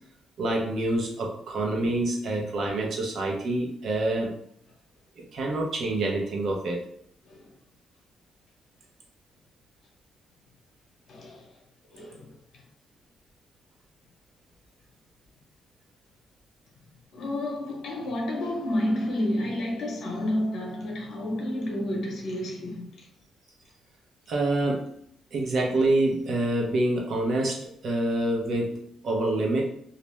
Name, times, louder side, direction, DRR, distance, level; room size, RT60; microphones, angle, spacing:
voice 1, 0.4-4.3 5.2-6.8 24.3-24.9 25.3-28.8 29.0-29.6, right 2 dB, 60° right, 0.7 m, -26 dB
voice 2, 11.1-11.5 11.9-12.3 17.1-23.1, left 1 dB, 65° left, 0.8 m, -30 dB
2.5 x 2.1 x 3.1 m
cardioid pair, 110°, 0 cm